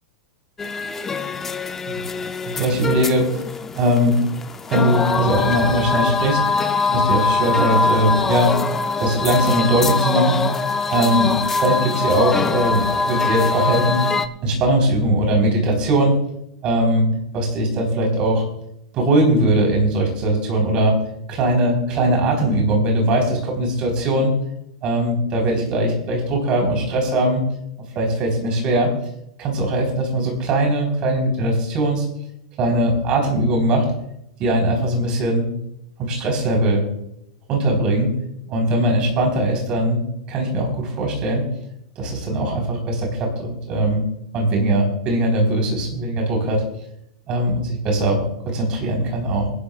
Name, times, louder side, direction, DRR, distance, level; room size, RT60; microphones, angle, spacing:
sound 1, 0.6-14.3, left 4 dB, 10° left, 0.4 m, -23 dB
voice 1, 2.5-3.3 3.7-4.2 4.7-6.4 6.9-8.5 9.0-10.5 10.9-11.3 11.6-14.0 14.4-16.2 16.6-18.4 18.9-21.0 21.3-24.3 24.8-27.4 27.9-28.9 29.4-32.0 32.6-33.9 34.4-35.5 36.0-36.8 37.5-38.1 38.5-40.0 40.3-41.4 42.0-44.0 44.3-46.6 47.3-49.5, right 1 dB, 25° right, 0 dB, 3.9 m, -20 dB
25.0 x 11.5 x 2.4 m, 0.79 s
supercardioid pair, 175°, 3 cm